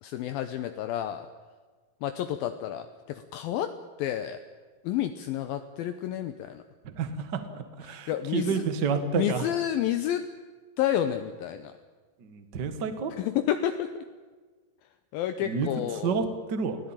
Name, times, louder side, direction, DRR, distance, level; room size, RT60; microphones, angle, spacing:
voice 1, 0.0-1.3 2.0-4.4 4.8-6.6 7.8-8.6 9.1-10.3 10.8-11.7 13.2-14.0 15.1-16.3, left 11 dB, 75° left, 9 dB, 2.5 m, -30 dB
voice 2, 6.8-7.4 7.8-9.5 12.2-13.1 15.4-15.7 16.0-16.8, right 5 dB, 50° right, 9 dB, 1.3 m, -29 dB
23.0 x 16.5 x 8.9 m, 1.4 s
omnidirectional pair, 4.6 m